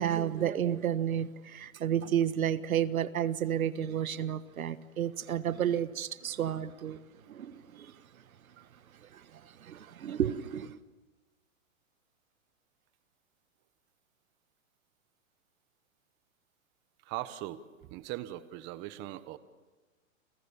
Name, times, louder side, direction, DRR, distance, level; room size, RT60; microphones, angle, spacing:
voice 1, 0.0-7.0 7.3-7.9 9.0-10.8, right 10 dB, 80° right, 14 dB, 1.5 m, -31 dB
voice 2, 17.0-19.4, right 14 dB, 25° right, 13 dB, 1.2 m, -40 dB
29.5 x 25.5 x 7.1 m, 1.3 s
hypercardioid pair, 145°, 41 cm